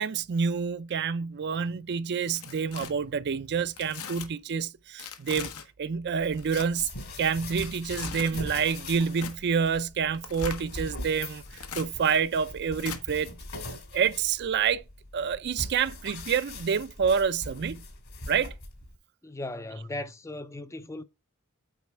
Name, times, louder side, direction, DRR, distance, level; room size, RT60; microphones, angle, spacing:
voice 1, 0.0-5.5 5.8-6.9 7.2-13.3 13.9-14.8 15.1-17.8 18.3-18.5, right 6 dB, 50° right, 0.4 m, -28 dB
Tearing, 2.2-2.9 3.8-4.3 5.0-5.7 6.3-6.7 7.5-8.4 9.1-9.4 10.1-10.7 11.5-11.9 12.8-13.0, left 7 dB, 85° left, 1.1 m, -39 dB
sound 1, 6.2-19.0, left 2 dB, 70° left, 2.5 m, -41 dB
voice 2, 19.2-21.0, left 2 dB, 15° left, 0.4 m, -37 dB
8.3 x 4.2 x 4.6 m
head